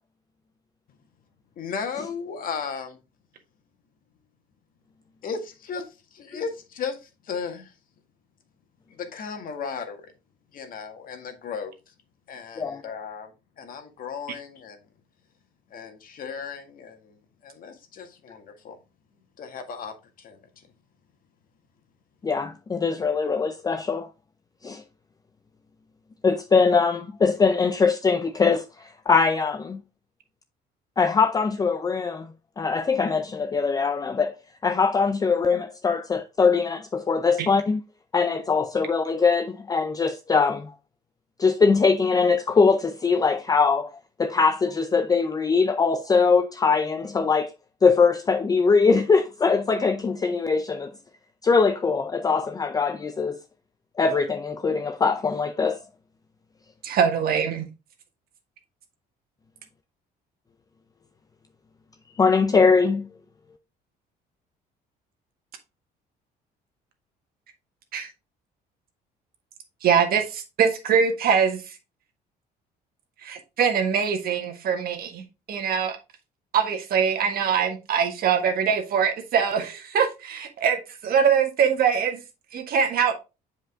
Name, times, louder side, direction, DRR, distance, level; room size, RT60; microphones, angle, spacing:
voice 1, 1.6-3.0 5.2-7.7 8.9-10.1 10.5-11.7 12.3-13.3 13.6-14.8 15.7-17.2 17.4-18.8 19.4-20.4, left 6 dB, 55° left, 1.8 m, -35 dB
voice 2, 22.2-24.1 24.6-24.8 26.2-29.8 31.0-32.3 32.6-34.3 34.6-37.8 38.1-40.7 41.4-43.9 44.2-47.5 47.8-50.9 51.4-53.4 54.0-55.8 62.2-63.1, left 5 dB, 20° left, 0.5 m, -22 dB
voice 3, 56.8-57.7 67.9-68.1 69.8-71.6 73.2-76.0 76.5-82.2 82.5-83.1, right 7 dB, 60° right, 1.7 m, -23 dB
7.5 x 5.1 x 3.6 m
cardioid pair, 110°, 17 cm